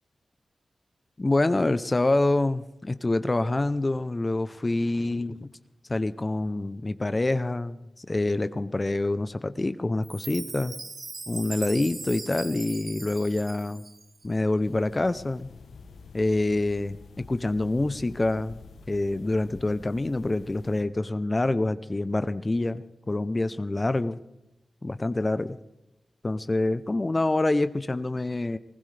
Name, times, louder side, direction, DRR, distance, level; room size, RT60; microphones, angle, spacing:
voice 1, 1.2-5.5 5.9-10.7 11.3-13.8 14.2-15.5 16.1-18.6 18.9-24.2 24.8-25.6 26.2-28.6, left 2 dB, 30° left, 13 dB, 0.7 m, -26 dB
Chime, 10.0-14.3, right 3 dB, 45° right, 0.5 m, -40 dB
sound 1, 14.6-20.8, left 4 dB, 80° left, 0.9 m, -48 dB
20.0 x 19.5 x 3.4 m, 0.92 s
cardioid pair, 55°, 0 cm